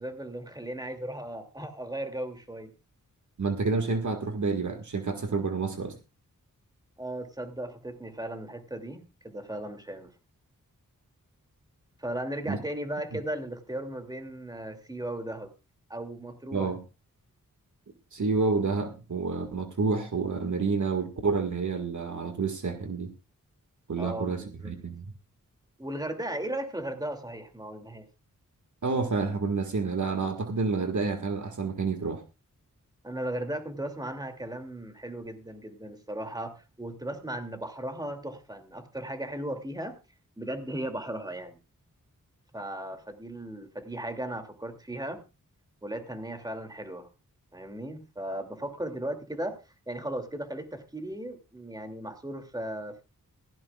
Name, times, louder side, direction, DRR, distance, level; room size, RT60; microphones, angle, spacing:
voice 1, 0.0-2.7 7.0-10.1 12.0-15.5 15.9-16.7 24.0-24.7 25.8-28.1 33.0-39.9 40.4-41.6 42.5-45.2 45.8-47.1 47.5-49.6 49.9-53.0, right 1 dB, 10° right, 6 dB, 2.7 m, -36 dB
voice 2, 3.4-6.0 12.5-12.6 16.5-16.8 18.1-23.1 23.9-25.1 28.8-32.2, right 4 dB, 60° right, 5 dB, 1.9 m, -29 dB
16.5 x 16.0 x 2.4 m, 0.28 s
wide cardioid pair, 70°, 33 cm